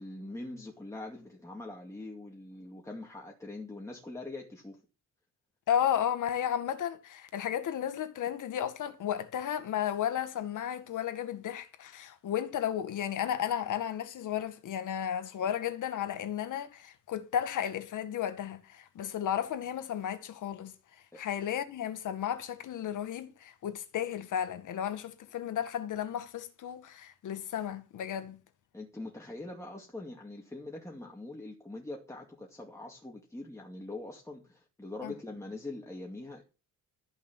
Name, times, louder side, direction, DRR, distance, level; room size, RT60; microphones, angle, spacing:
voice 1, 0.0-4.8 21.1-21.2 28.7-36.4, left 2 dB, 10° left, 2.4 m, -43 dB
voice 2, 5.7-20.7 21.2-28.4 35.0-35.1, left 9 dB, 70° left, 1.9 m, -33 dB
14.0 x 6.5 x 7.3 m
cardioid pair, 135°, 32 cm